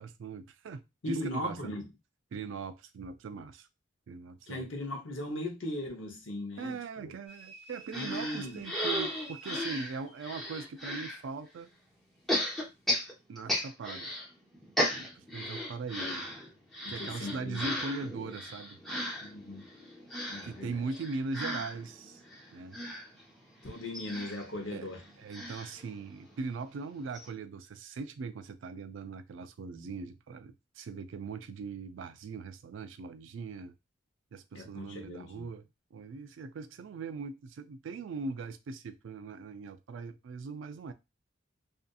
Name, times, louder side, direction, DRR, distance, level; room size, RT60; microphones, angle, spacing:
voice 1, 0.0-1.7 2.3-3.7 4.1-4.7 6.6-11.7 13.3-14.1 14.9-16.3 16.9-18.8 20.4-22.2 22.5-22.8 24.7-24.9 25.2-33.8 34.3-35.6 35.9-40.9, right 4 dB, 70° right, 0.3 m, -40 dB
voice 2, 1.0-1.8 4.5-7.1 7.9-8.6 16.8-17.7 19.2-19.7 20.3-20.7 23.6-25.0 29.7-29.9 34.5-35.5, left 1 dB, 70° left, 0.8 m, -38 dB
sound 1, 7.3-10.6, right 3 dB, 35° left, 1.0 m, -51 dB
sound 2, 7.9-11.2 12.3-14.3 14.5-26.5 26.8-26.9 27.1-27.3, left 1 dB, ahead, 0.8 m, -36 dB
2.7 x 2.5 x 2.3 m
head